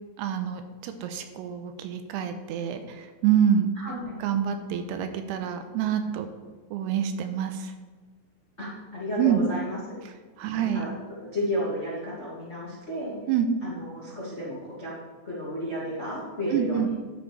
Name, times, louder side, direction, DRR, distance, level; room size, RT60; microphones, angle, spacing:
voice 1, 0.2-3.7 4.2-6.3 6.7-7.7 9.2-9.4 10.4-10.8 13.3-13.5 16.5-16.9, right 9 dB, 85° right, 7 dB, 2.7 m, -26 dB
voice 2, 3.8-4.1 8.6-9.8 10.5-10.9 11.2-13.1 13.6-14.9 15.2-16.9, left 1 dB, 65° left, -7 dB, 0.6 m, -32 dB
11.5 x 7.0 x 3.3 m, 1.4 s
omnidirectional pair, 4.8 m